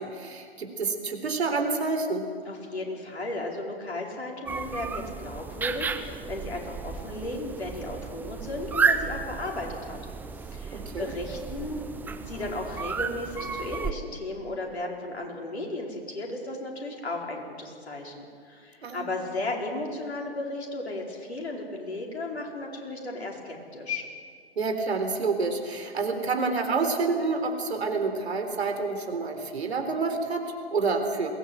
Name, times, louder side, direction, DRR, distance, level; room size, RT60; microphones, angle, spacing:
voice 1, 0.0-2.3 10.7-11.1 18.8-19.0 24.6-31.3, right 4 dB, 75° right, 6 dB, 3.9 m, -28 dB
voice 2, 2.4-10.0 10.3-24.1, left 2 dB, 80° left, -1 dB, 4.8 m, -35 dB
sound 1, 4.5-13.9, right 5 dB, 5° right, 0.5 m, -32 dB
22.0 x 18.5 x 8.1 m, 2.1 s
figure-of-eight pair, 120°, 32 cm